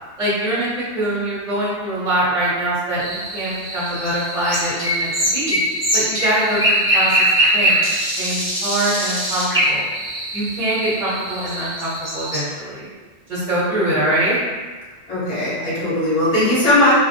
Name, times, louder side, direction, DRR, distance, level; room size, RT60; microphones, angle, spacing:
voice 1, 0.2-5.6 5.9-9.8 10.3-12.9 13.3-14.4, right 1 dB, 40° right, -10 dB, 1.0 m, -23 dB
sound 1, 3.0-12.4, equal, 10° right, 0.8 m, -22 dB
voice 2, 15.1-16.9, left 1 dB, 35° left, -10 dB, 1.0 m, -18 dB
2.3 x 2.1 x 2.7 m, 1.4 s
omnidirectional pair, 1.2 m